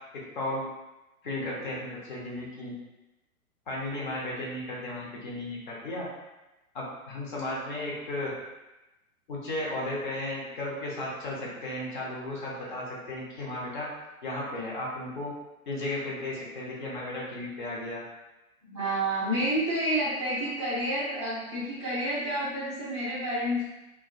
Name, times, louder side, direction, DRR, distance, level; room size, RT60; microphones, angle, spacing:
voice 1, 0.3-0.7 1.2-2.7 3.7-6.1 6.7-8.3 9.3-13.9 14.2-15.3 15.7-18.0, left 1 dB, 35° left, -4 dB, 0.6 m, -34 dB
voice 2, 18.6-23.6, right 1 dB, 20° right, -11 dB, 0.4 m, -29 dB
2.3 x 2.2 x 2.4 m, 1.0 s
figure-of-eight pair, 115°, 43 cm